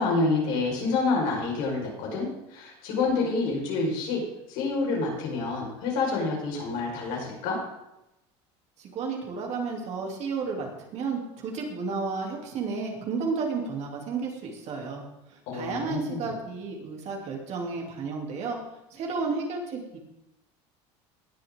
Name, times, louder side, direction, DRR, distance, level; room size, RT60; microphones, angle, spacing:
voice 1, 0.0-4.2 4.5-7.6 15.5-16.3, left 3 dB, 75° left, -2 dB, 5.2 m, -28 dB
voice 2, 8.8-15.0 15.5-18.6 18.9-20.0, right 4 dB, 50° right, 0 dB, 3.2 m, -32 dB
19.0 x 6.9 x 3.8 m, 0.89 s
supercardioid pair, 110°, 14 cm